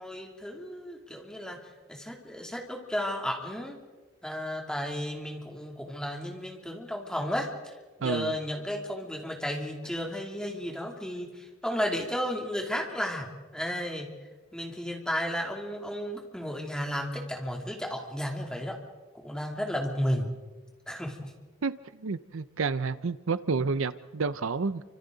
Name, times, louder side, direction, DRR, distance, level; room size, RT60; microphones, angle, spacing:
voice 1, 0.0-1.6 1.9-3.8 4.2-14.1 14.5-18.8 19.2-20.3 20.9-21.3 23.5-23.6, equal, 5° left, 2.9 m, -33 dB
voice 2, 8.0-8.4 21.6-21.7 22.0-24.8, right 4 dB, 70° right, 0.6 m, -29 dB
29.5 x 25.5 x 4.0 m
head